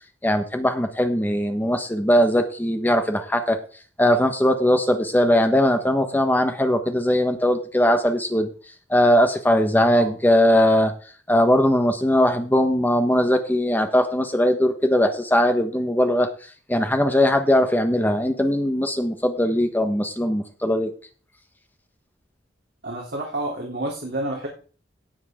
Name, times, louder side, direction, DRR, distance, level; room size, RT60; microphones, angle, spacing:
voice 1, 0.2-3.6 4.0-8.5 8.9-10.9 11.3-20.9, equal, 10° left, 6 dB, 1.2 m, -20 dB
voice 2, 22.8-24.5, right 1 dB, 65° right, -2 dB, 3.2 m, -29 dB
18.0 x 7.6 x 3.7 m, 0.40 s
head